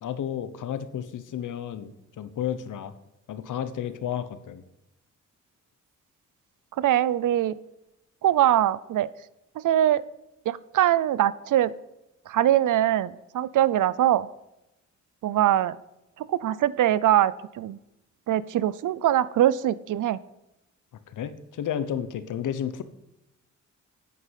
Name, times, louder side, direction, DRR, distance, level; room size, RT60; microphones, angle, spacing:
voice 1, 0.0-2.9 3.3-4.6 21.1-22.8, left 9 dB, 85° left, 12 dB, 1.1 m, -32 dB
voice 2, 6.8-7.6 8.2-9.1 9.6-10.0 10.5-11.7 12.3-14.3 15.2-15.8 16.2-17.8 18.3-20.2, right 12 dB, 90° right, 19 dB, 0.6 m, -22 dB
9.4 x 8.4 x 7.5 m, 0.90 s
wide cardioid pair, 180°, 30 cm